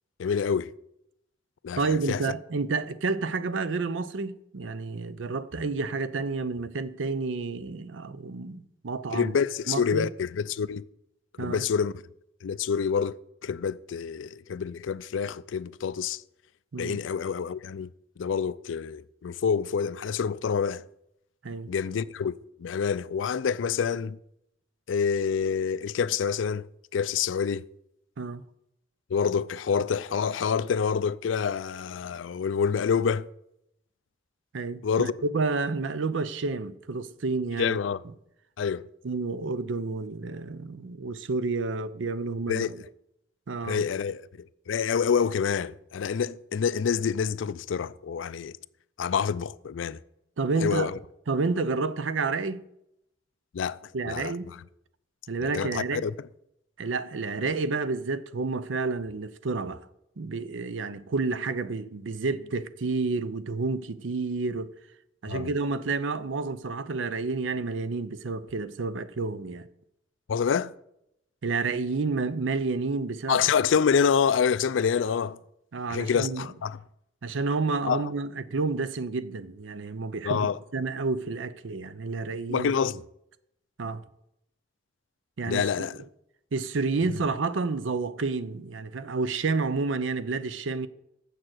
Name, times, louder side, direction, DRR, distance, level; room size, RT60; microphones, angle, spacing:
voice 1, 0.2-0.7 1.6-2.2 9.1-10.8 11.4-12.0 12.4-16.2 16.8-17.9 18.2-20.8 21.7-24.2 24.9-26.7 26.9-27.7 29.1-33.3 34.8-35.1 37.6-38.0 38.6-38.9 42.5-42.7 43.6-48.6 49.0-50.0 50.6-51.0 53.5-53.8 54.1-54.6 55.4-56.1 65.3-65.5 70.3-70.7 73.3-75.4 75.9-76.8 77.9-78.1 80.2-80.6 82.5-83.0 85.4-86.0, left 6 dB, 90° left, 0.4 m, -27 dB
voice 2, 1.8-9.3 9.7-10.1 11.4-11.6 16.7-17.0 21.4-21.7 28.2-28.4 34.5-37.8 39.0-42.8 43.5-43.8 46.2-46.3 50.4-50.9 51.3-52.7 53.9-54.5 55.3-56.1 56.8-59.9 60.2-64.7 65.2-69.7 71.4-73.5 75.7-76.5 77.2-82.7 83.8-84.0 85.4-85.9 86.5-90.9, right 3 dB, 90° right, 0.6 m, -30 dB
7.5 x 6.7 x 7.8 m
head